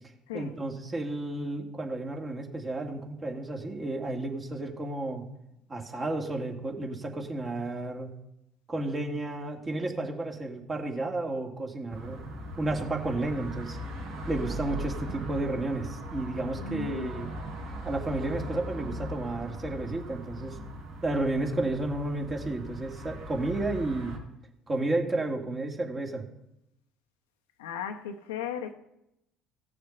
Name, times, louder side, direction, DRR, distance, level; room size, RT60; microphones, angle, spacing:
voice 1, 0.3-5.2 5.7-8.1 8.7-12.2 12.6-13.8 14.3-17.3 17.8-20.6 21.0-24.2 24.7-26.2, right 2 dB, 30° right, 2.3 m, -32 dB
sound 1, 11.9-24.2, equal, 70° right, 3.3 m, -39 dB
voice 2, 16.5-17.1 27.6-28.7, left 7 dB, 75° left, 0.8 m, -36 dB
16.0 x 6.7 x 5.5 m
figure-of-eight pair, 55°, 0 cm